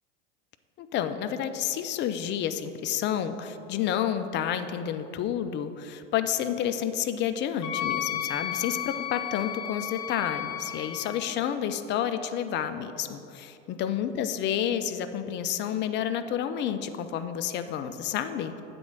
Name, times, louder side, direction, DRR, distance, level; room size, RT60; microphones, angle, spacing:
voice 1, 0.8-18.6, left 9 dB, 30° left, 10 dB, 0.4 m, -30 dB
Wind instrument woodwind instrument, 7.6-11.2, left 11 dB, 70° left, 0.8 m, -33 dB
7.8 x 4.2 x 6.0 m, 2.8 s
hypercardioid pair, 100°, 36 cm